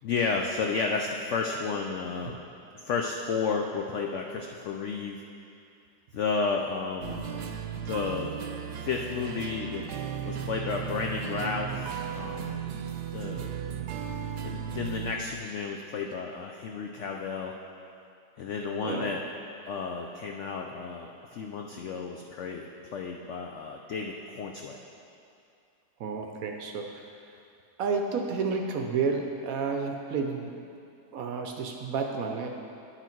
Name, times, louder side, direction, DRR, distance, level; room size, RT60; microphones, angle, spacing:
voice 1, 0.0-2.4 2.7-5.2 6.1-7.3 7.8-8.4 8.8-9.9 10.3-12.7 13.1-13.6 14.4-17.5 18.4-19.2 19.6-24.8, left 4 dB, 75° left, 1 dB, 0.6 m, -32 dB
sound 1, 7.0-15.1, right 8 dB, 90° right, 1.2 m, -35 dB
voice 2, 18.8-19.2 26.0-27.1 27.8-30.5 31.1-32.5, right 5 dB, 65° right, 3 dB, 0.9 m, -31 dB
10.0 x 5.8 x 4.5 m, 2.5 s
omnidirectional pair, 1.8 m